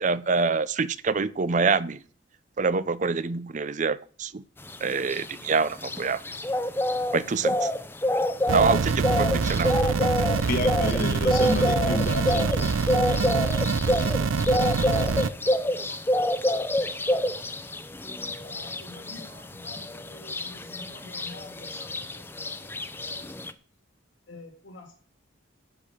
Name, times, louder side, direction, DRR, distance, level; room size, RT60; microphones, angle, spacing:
voice 1, 0.0-2.0 2.6-4.4 4.8-6.2 7.1-7.7 8.5-10.3, right 4 dB, 40° right, 0.5 m, -26 dB
sound 1, 4.7-23.5, left 1 dB, 10° left, 0.6 m, -27 dB
sound 2, 8.5-15.3, right 4 dB, 85° right, 0.6 m, -25 dB
voice 2, 10.5-12.5 14.0-14.1, left 2 dB, 45° left, 1.7 m, -29 dB
voice 3, 12.5-16.0 17.1-17.2 18.4-23.3 24.3-24.9, left 2 dB, 70° left, 2.0 m, -48 dB
12.0 x 5.0 x 8.6 m
head